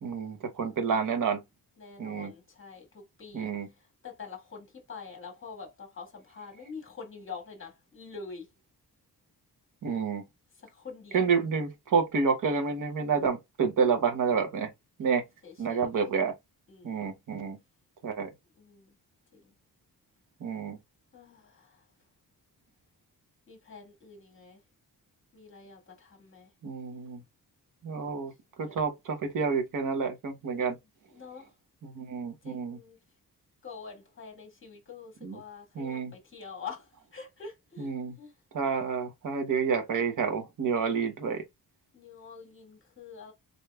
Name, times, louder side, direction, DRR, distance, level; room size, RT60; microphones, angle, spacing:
voice 1, 0.0-1.4 2.0-2.3 3.3-3.7 9.8-10.2 11.1-14.7 15.0-15.2 15.6-16.3 16.8-17.6 18.0-18.3 20.4-20.8 26.6-27.2 27.8-28.3 28.6-30.8 31.8-32.8 35.2-35.4 35.7-36.1 37.8-38.1 38.5-41.4, right 5 dB, 55° right, 0.9 m, -29 dB
voice 2, 1.8-8.5 10.6-11.3 15.0-15.1 15.4-15.9 16.7-17.1 18.6-18.9 19.3-19.4 21.1-21.8 23.5-24.6 25.3-26.5 28.6-28.8 31.1-31.5 32.4-33.0 33.6-38.3 41.9-43.3, left 5 dB, 30° left, 1.6 m, -46 dB
4.0 x 3.3 x 2.3 m
wide cardioid pair, 165°, 39 cm